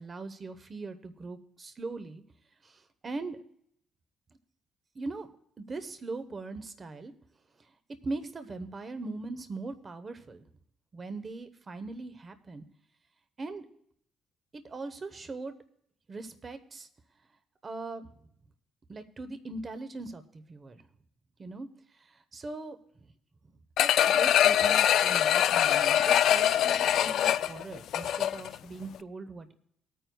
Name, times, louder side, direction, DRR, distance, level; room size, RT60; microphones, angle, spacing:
voice 1, 0.0-2.2 2.6-3.4 4.9-5.3 5.6-7.1 8.0-10.4 10.9-12.6 13.4-13.6 14.5-15.5 16.1-16.9 17.6-18.2 18.9-20.8 21.4-21.7 22.0-23.1 23.8-29.5, right 3 dB, 30° right, 10 dB, 1.0 m, -40 dB
sound 1, 23.8-28.6 29.0-29.1, left 10 dB, 70° left, 0.3 m, -23 dB
20.0 x 9.2 x 2.3 m, 0.69 s
cardioid pair, 115°, 0 cm